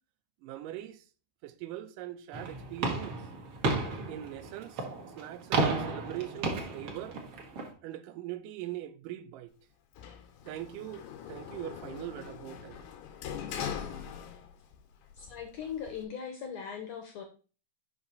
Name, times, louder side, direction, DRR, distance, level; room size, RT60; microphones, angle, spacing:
voice 1, 0.4-1.1 1.4-3.2 4.1-4.9 5.2-7.2 7.8-9.5 10.5-12.9 13.5-13.9, right 13 dB, 80° right, 2.1 m, -42 dB
sound 1, 2.3-7.7, right 3 dB, 55° right, 1.6 m, -33 dB
Sliding door, 10.0-14.8 15.1-16.0, left 8 dB, 90° left, 2.6 m, -41 dB
voice 2, 15.2-17.2, left 7 dB, 70° left, 1.6 m, -39 dB
5.9 x 5.6 x 3.9 m
omnidirectional pair, 3.9 m